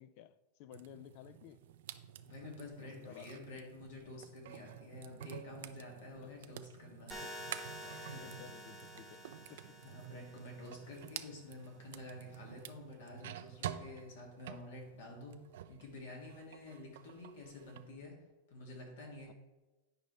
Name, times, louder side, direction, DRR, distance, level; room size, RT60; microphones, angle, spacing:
voice 1, 0.0-1.6 2.8-3.3 6.2-6.6 7.1-7.3 7.8-9.2 9.5-9.6 19.3-19.4, left 11 dB, 50° left, 0.4 m, -55 dB
sound 1, 0.7-15.8 16.2-17.9, right 11 dB, 75° right, 0.4 m, -50 dB
voice 2, 2.3-7.1 7.9-8.5 9.8-15.3 15.7-18.1 18.5-19.3, left 2 dB, 75° left, 2.4 m, -49 dB
sound 2, 7.1-11.1, equal, 10° left, 1.0 m, -49 dB
9.4 x 5.3 x 3.3 m
supercardioid pair, 150°, 0 cm